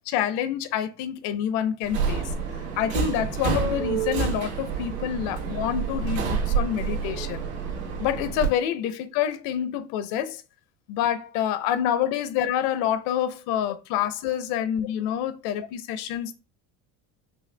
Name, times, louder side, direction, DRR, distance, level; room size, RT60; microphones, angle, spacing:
voice 1, 0.1-2.3 2.8-7.4 8.0-10.4 10.9-16.3, left 10 dB, 80° left, 0.7 m, -27 dB
Subway metro underground, 1.8-8.5, right 5 dB, 90° right, 1.8 m, -28 dB
5.4 x 2.3 x 3.3 m
cardioid pair, 130°, 37 cm